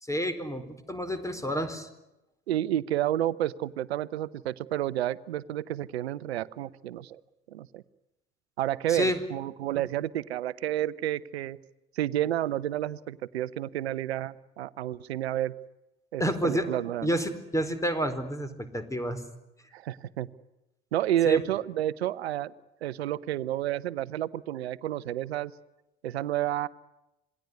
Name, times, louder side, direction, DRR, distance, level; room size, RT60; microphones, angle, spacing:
voice 1, 0.0-1.9 8.9-9.2 16.2-16.7 17.0-19.2 21.2-21.4, equal, 10° left, 12 dB, 4.4 m, -29 dB
voice 2, 2.5-7.2 7.5-7.8 8.6-11.6 11.9-15.5 16.1-17.2 19.7-20.3 20.9-22.5 22.8-25.5 26.0-26.7, right 12 dB, 85° right, 19 dB, 0.9 m, -30 dB
27.5 x 19.5 x 9.6 m, 0.95 s
hypercardioid pair, 60°, 31 cm